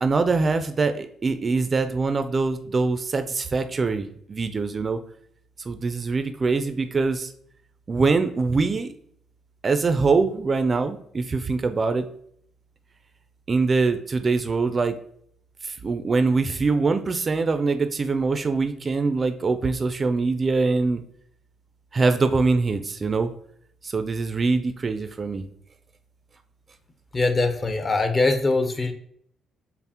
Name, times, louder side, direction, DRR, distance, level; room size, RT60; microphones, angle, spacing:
voice 1, 0.0-5.0 5.7-7.3 7.9-8.9 9.6-12.1 13.5-15.0 15.6-21.0 21.9-23.3 23.8-25.4, right 4 dB, 35° right, 9 dB, 0.3 m, -23 dB
voice 2, 27.1-28.9, left 3 dB, 30° left, 7 dB, 0.6 m, -22 dB
5.4 x 2.0 x 2.8 m, 0.66 s
cardioid pair, 90°, 0 cm